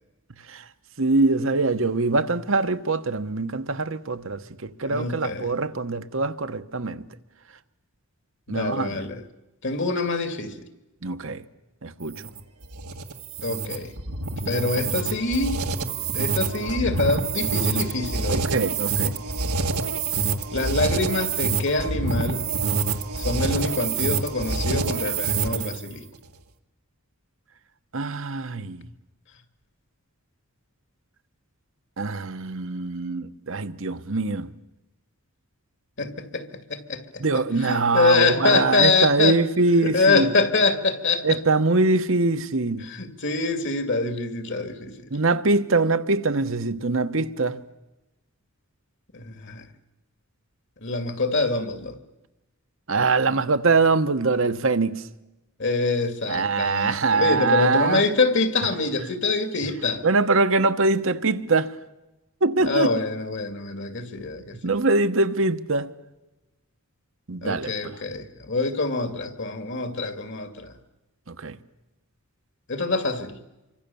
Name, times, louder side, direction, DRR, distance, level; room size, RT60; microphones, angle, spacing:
voice 1, 1.0-7.0 8.5-9.1 11.0-11.4 11.8-12.2 18.3-19.2 27.9-28.9 32.0-34.5 37.2-40.3 41.2-42.9 45.1-47.6 52.9-55.0 56.3-58.0 60.0-61.7 62.4-62.9 64.6-65.9 67.3-68.0 71.3-71.6, right 3 dB, 65° right, 1.1 m, -23 dB
voice 2, 4.9-5.5 8.5-9.2 9.6-10.6 13.4-13.9 14.5-15.7 16.1-18.6 20.5-22.4 23.2-26.0 36.0-37.2 37.6-39.4 39.8-41.4 42.8-45.0 49.1-49.6 50.8-52.0 55.6-60.1 62.6-64.7 67.4-70.7 72.7-73.4, left 3 dB, 55° left, 2.4 m, -25 dB
sound 1, 12.0-25.9, right 4 dB, 85° right, 1.7 m, -27 dB
27.0 x 25.0 x 7.1 m
head